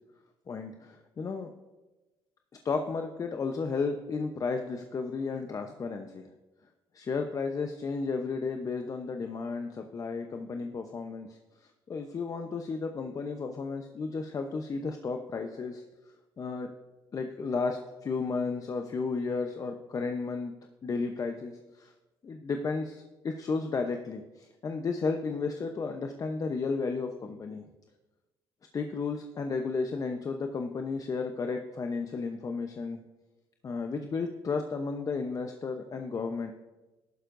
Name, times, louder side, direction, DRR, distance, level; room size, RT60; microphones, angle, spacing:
voice 1, 0.5-1.5 2.6-6.3 6.9-11.4 11.9-15.8 16.4-16.7 17.1-20.5 20.8-21.9 22.2-27.6 28.7-33.0 33.6-36.5, left 4 dB, 40° left, 5 dB, 0.8 m, -33 dB
14.0 x 11.5 x 2.6 m, 1.1 s
supercardioid pair, 80°, 9 cm